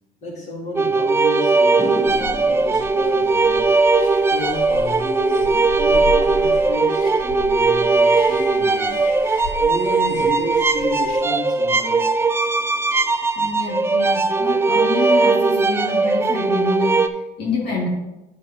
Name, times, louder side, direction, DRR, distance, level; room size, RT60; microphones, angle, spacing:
voice 1, 0.2-3.7 4.2-9.0 9.6-12.2, equal, 45° left, -2 dB, 2.3 m, -31 dB
sound 1, 0.7-17.1, right 3 dB, 15° right, 0.3 m, -19 dB
sound 2, 1.8-8.3, right 1 dB, 5° left, 1.3 m, -38 dB
sound 3, 2.1-11.2, left 4 dB, 60° left, 0.6 m, -34 dB
voice 2, 13.4-17.9, left 4 dB, 75° left, -3 dB, 1.9 m, -27 dB
9.2 x 6.2 x 2.8 m, 0.99 s
cardioid pair, 110°, 17 cm